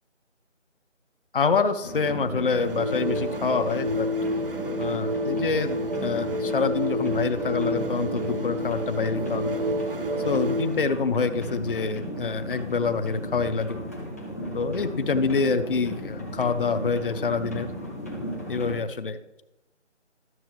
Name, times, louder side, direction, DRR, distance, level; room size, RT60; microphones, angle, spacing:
voice 1, 1.3-4.1 4.8-9.6 10.2-13.8 14.5-17.7 18.5-19.4, left 4 dB, 50° left, 10 dB, 0.6 m, -26 dB
sound 1, 1.8-18.8, equal, 15° left, 0.7 m, -35 dB
sound 2, 2.5-10.9, equal, 50° right, 0.7 m, -29 dB
12.0 x 7.1 x 3.1 m, 0.97 s
figure-of-eight pair, 165°, 36 cm